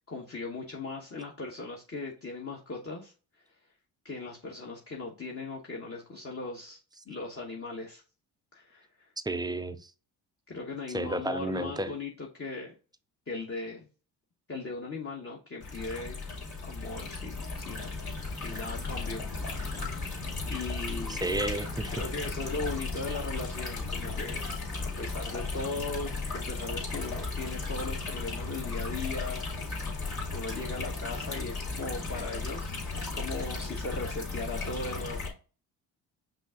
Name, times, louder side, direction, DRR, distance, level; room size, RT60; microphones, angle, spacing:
voice 1, 0.1-3.1 4.0-6.8 7.1-8.0 8.5-9.1 10.5-12.7 13.3-13.9 14.5-16.2 16.6-17.9 18.3-19.3 19.7-20.0 20.5-21.2 21.9-24.5 24.8-29.5 29.7-35.2, left 3 dB, 30° left, 1.1 m, -38 dB
voice 2, 9.3-9.9 10.9-11.9 21.1-21.9, right 2 dB, 10° right, 0.4 m, -32 dB
sound 1, 15.6-35.3, left 3 dB, 50° left, 2.6 m, -35 dB
5.5 x 2.5 x 3.7 m
supercardioid pair, 65°, 47 cm